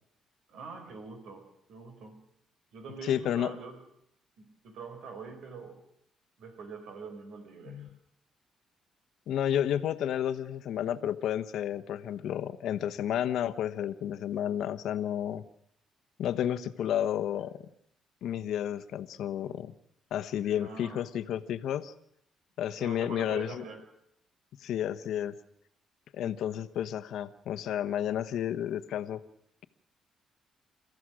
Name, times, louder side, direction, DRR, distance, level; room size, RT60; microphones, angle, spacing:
voice 1, 0.5-2.2 2.7-3.8 4.4-5.8 6.4-7.9 20.6-21.0 22.8-23.8, right 4 dB, 80° right, 6 dB, 4.7 m, -44 dB
voice 2, 3.0-3.5 7.7-7.9 9.3-15.4 16.2-17.6 18.2-19.7 20.1-21.9 22.6-23.6 24.6-25.3 26.1-29.2, left 10 dB, 80° left, 12 dB, 1.0 m, -31 dB
29.5 x 14.5 x 6.3 m, 0.74 s
cardioid pair, 90°, 0 cm